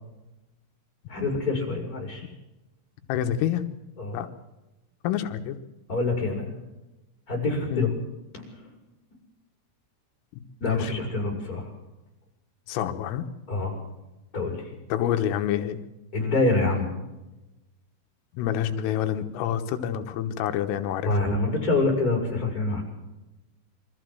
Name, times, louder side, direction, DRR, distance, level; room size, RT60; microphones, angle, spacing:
voice 1, 1.1-2.2 4.0-4.2 5.9-6.5 7.3-7.9 8.3-8.7 10.6-11.7 13.5-13.8 14.3-14.7 16.1-16.9 21.0-22.8, left 2 dB, 15° left, 0 dB, 6.1 m, -26 dB
voice 2, 3.1-3.6 4.1-4.3 5.0-5.6 7.7-7.9 10.6-10.9 12.7-13.3 14.9-15.8 18.4-21.2, left 10 dB, 90° left, 7 dB, 3.8 m, -27 dB
25.0 x 14.0 x 7.9 m, 1.0 s
omnidirectional pair, 5.8 m